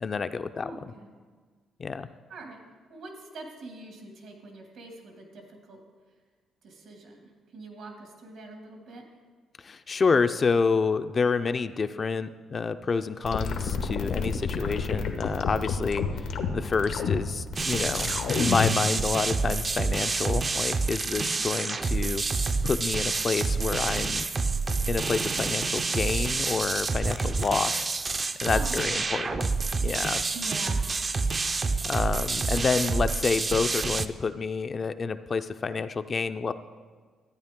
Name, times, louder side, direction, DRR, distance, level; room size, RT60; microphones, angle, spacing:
voice 1, 0.0-0.7 1.8-2.1 9.6-16.0 16.5-22.2 22.6-24.3 24.9-27.9 28.4-29.5 29.8-30.2 31.8-36.5, left 5 dB, 40° left, 10 dB, 0.4 m, -28 dB
voice 2, 0.6-1.1 2.3-2.6 2.9-5.8 6.6-7.2 7.5-9.0 21.1-21.3 28.5-29.1 30.3-30.9, right 2 dB, 75° right, 2 dB, 2.1 m, -43 dB
sound 1, 13.2-18.8, left 5 dB, 90° left, 1.0 m, -29 dB
sound 2, 17.6-34.1, right 4 dB, 35° right, 0.4 m, -28 dB
13.0 x 9.0 x 3.7 m, 1.5 s
cardioid pair, 90°, 0 cm